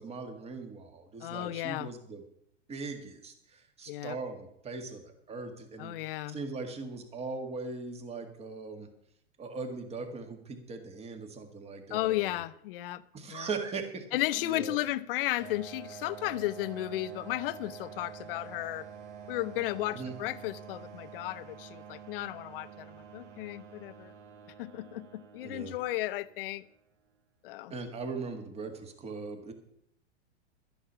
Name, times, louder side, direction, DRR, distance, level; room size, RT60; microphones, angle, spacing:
voice 1, 0.0-2.2 2.7-8.9 9.4-12.3 13.1-14.0 14.4-14.8 19.9-20.1 25.4-25.8 27.7-29.5, right 4 dB, 15° right, 1.8 m, -40 dB
voice 2, 1.2-1.9 3.9-4.2 5.8-6.4 11.9-13.0 13.3-13.5 14.1-18.9 19.3-24.1 24.6-26.6 27.4-27.7, left 16 dB, 50° left, 0.6 m, -34 dB
sound 1, 15.4-26.8, right 7 dB, 80° right, 1.8 m, -48 dB
12.5 x 10.0 x 5.6 m
hypercardioid pair, 145°, 36 cm